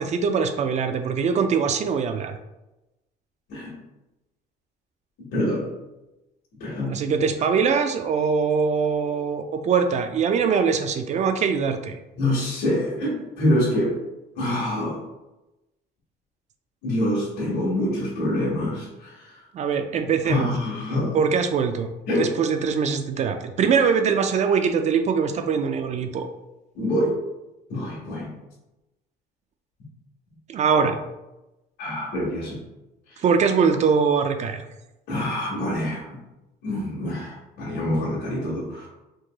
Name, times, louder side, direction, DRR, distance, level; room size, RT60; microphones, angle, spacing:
voice 1, 0.0-2.3 6.9-12.0 19.5-20.5 21.1-21.9 22.2-26.3 30.5-31.0 33.2-34.6, right 6 dB, 45° right, 7 dB, 0.4 m, -22 dB
voice 2, 5.3-5.7 6.6-6.9 12.2-14.0 14.3-15.0 16.8-19.4 20.2-21.2 22.1-22.3 26.7-27.1 27.7-28.3 31.8-32.6 35.1-36.1 36.6-38.9, left 1 dB, 70° left, -5 dB, 1.5 m, -25 dB
4.4 x 3.0 x 2.3 m, 0.98 s
cardioid pair, 110°, 17 cm